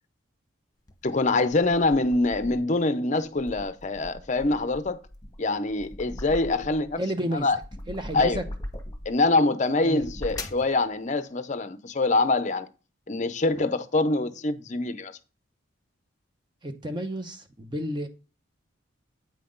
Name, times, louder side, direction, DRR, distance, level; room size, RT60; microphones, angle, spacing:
sound 1, 0.9-2.8 3.2-7.0 7.4-9.2 9.8-10.7, left 1 dB, 20° left, 1.1 m, -40 dB
voice 1, 1.0-5.0 5.4-7.0 7.4-7.6 8.1-8.4 9.1-12.7 13.1-15.2, left 2 dB, 35° left, 0.6 m, -24 dB
voice 2, 7.0-7.5 7.9-8.4 9.8-10.0 16.6-18.1, equal, 20° right, 0.7 m, -31 dB
8.6 x 5.8 x 3.8 m
head